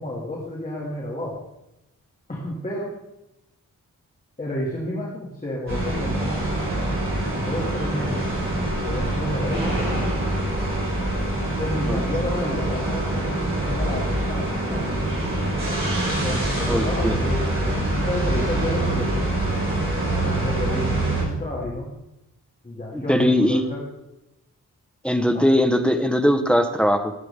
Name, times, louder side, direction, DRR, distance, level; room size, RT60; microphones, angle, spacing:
voice 1, 0.0-1.4 2.3-2.9 4.4-6.4 7.3-8.3 8.8-9.8 11.6-15.0 16.2-19.3 20.2-21.9 22.6-23.8 25.3-25.5, left 1 dB, 25° left, -4 dB, 2.0 m, -31 dB
sound 1, 5.7-21.2, right 1 dB, 40° right, 4.8 m, -25 dB
sound 2, 8.1-8.3 8.7-8.8 10.0-10.1 10.4-10.5 11.0-11.1 12.5-13.3 13.8-14.1 14.4-14.5 14.8-14.9 15.2-15.3 16.8-17.1 17.4-17.5 18.8-18.9 19.2-19.3 19.7-19.8 21.2-21.9, left 6 dB, 65° left, 0.9 m, -38 dB
voice 2, 16.7-17.2 22.9-23.6 25.0-27.1, equal, 5° left, 6 dB, 0.8 m, -20 dB
18.0 x 7.7 x 3.4 m, 0.92 s
wide cardioid pair, 150°, 33 cm